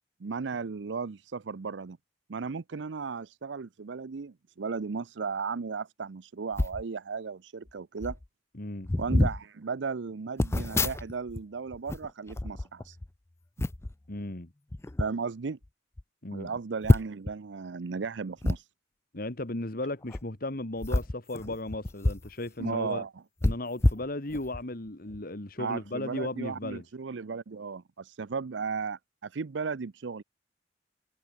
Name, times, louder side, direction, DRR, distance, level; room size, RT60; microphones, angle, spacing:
voice 1, 0.2-2.0 2.3-8.2 9.0-13.0 15.0-15.6 16.3-18.7 22.6-23.1 25.6-30.2, right 5 dB, 80° right, 0.6 m, -35 dB
sound 1, 6.5-6.8 7.7-7.8 8.0-8.3 8.8-9.4 10.4-11.4 11.7-13.1 13.6-13.9 14.7-15.1 15.6-15.7 16.0-16.1 16.8-17.3 18.4-18.6 20.0-20.2 20.8-22.3 22.6-22.7 23.4-24.6 25.1-25.3, left 2 dB, 15° left, 0.4 m, -27 dB
voice 2, 8.5-8.9 14.1-14.5 16.2-16.5 19.1-23.1 23.4-26.8, left 2 dB, 55° left, 2.1 m, -35 dB
head